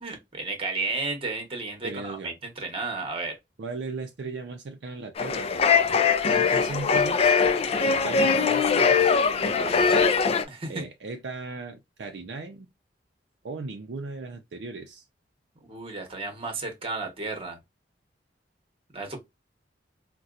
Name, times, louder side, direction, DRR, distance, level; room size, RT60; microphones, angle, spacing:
voice 1, 0.0-3.4 6.3-6.4 10.5-10.8 15.7-17.6 18.9-19.2, right 3 dB, 30° right, 1.0 m, -33 dB
voice 2, 1.8-2.4 3.6-5.8 6.3-7.2 7.8-9.2 9.4-10.0 10.7-12.7 13.4-15.0, right 3 dB, 65° right, 0.5 m, -37 dB
sound 1, 5.2-10.4, left 5 dB, 35° left, 0.4 m, -21 dB
4.1 x 2.2 x 2.4 m
head